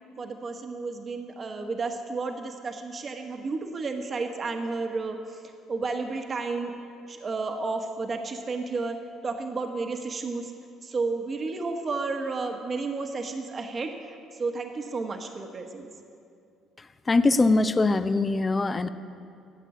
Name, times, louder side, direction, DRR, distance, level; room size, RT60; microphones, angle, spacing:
voice 1, 0.2-5.4 5.7-6.7 7.1-9.0 9.2-10.5 10.8-15.9, right 3 dB, 40° right, 4 dB, 1.3 m, -32 dB
voice 2, 16.8-18.9, left 3 dB, 30° left, 12 dB, 0.7 m, -23 dB
14.0 x 8.3 x 8.3 m, 2.4 s
hypercardioid pair, 50°, 0 cm